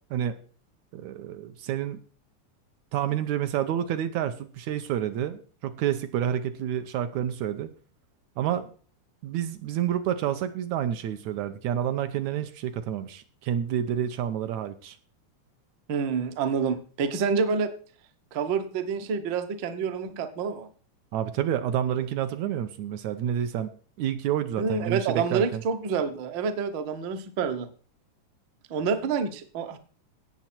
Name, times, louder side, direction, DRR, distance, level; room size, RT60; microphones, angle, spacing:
voice 1, 0.9-2.0 2.9-7.7 8.4-8.7 9.2-15.0 21.1-23.7 24.0-25.6, right 10 dB, 75° right, 9 dB, 2.0 m, -29 dB
voice 2, 15.9-17.7 18.3-20.7 24.6-27.7 28.7-29.8, right 5 dB, 60° right, 8 dB, 1.3 m, -28 dB
17.0 x 7.0 x 4.4 m, 0.41 s
omnidirectional pair, 3.5 m